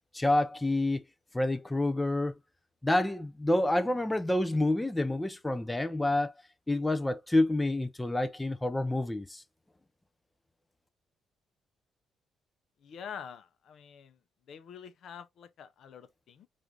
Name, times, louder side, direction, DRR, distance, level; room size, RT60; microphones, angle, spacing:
voice 1, 0.1-1.0 1.3-2.3 2.8-6.3 6.7-9.4, left 1 dB, 10° left, 0.5 m, -28 dB
voice 2, 12.8-14.2 14.5-16.5, left 7 dB, 70° left, 0.6 m, -46 dB
4.9 x 2.5 x 2.8 m
cardioid pair, 90°, 0 cm